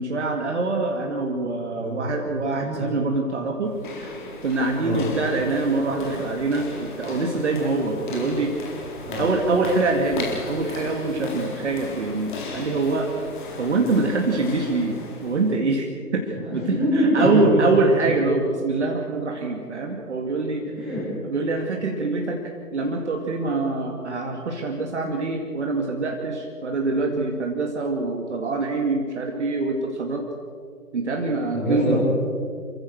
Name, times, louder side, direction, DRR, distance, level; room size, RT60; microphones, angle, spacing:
voice 1, 0.0-4.2 4.4-8.5 9.2-13.1 13.6-20.7 21.2-22.4 22.7-30.2 30.9-32.0, right 3 dB, 45° right, 2 dB, 2.4 m, -24 dB
voice 2, 2.6-3.0 4.8-5.0 9.0-9.2 16.5-17.6 20.7-21.1 31.5-32.0, equal, ahead, -9 dB, 7.1 m, -24 dB
sound 1, 3.6-15.6, left 2 dB, 30° left, 3.9 m, -37 dB
28.0 x 15.0 x 6.6 m, 2.2 s
figure-of-eight pair, 150°, 47 cm